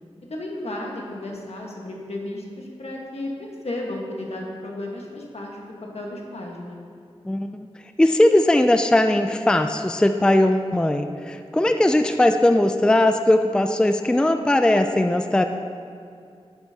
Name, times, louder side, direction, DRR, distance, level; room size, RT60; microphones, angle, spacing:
voice 1, 0.3-6.8, left 1 dB, 75° left, -1 dB, 1.5 m, -33 dB
voice 2, 8.0-15.4, left 1 dB, 10° left, 7 dB, 0.3 m, -19 dB
11.5 x 7.8 x 2.9 m, 2.4 s
wide cardioid pair, 75°, 11 cm